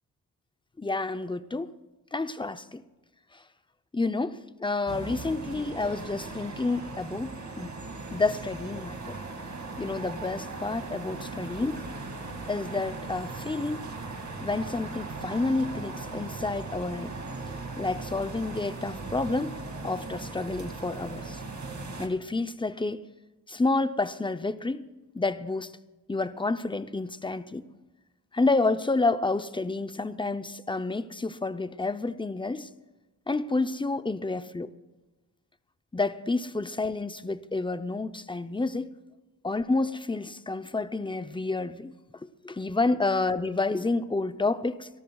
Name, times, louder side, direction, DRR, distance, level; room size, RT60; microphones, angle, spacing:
voice 1, 0.8-1.7 2.1-2.8 3.9-7.3 7.6-7.8 8.1-9.2 9.8-11.8 12.5-13.9 14.4-17.1 17.8-19.5 19.8-21.4 22.0-23.0 23.5-24.9 25.1-25.7 26.1-27.7 28.3-32.7 33.3-34.7 35.9-38.9 39.4-41.9 42.2-44.9, left 3 dB, 10° left, 0.6 m, -29 dB
sound 1, 4.9-22.1, right 3 dB, 45° right, 2.2 m, -38 dB
30.0 x 13.5 x 2.4 m
wide cardioid pair, 90°, 41 cm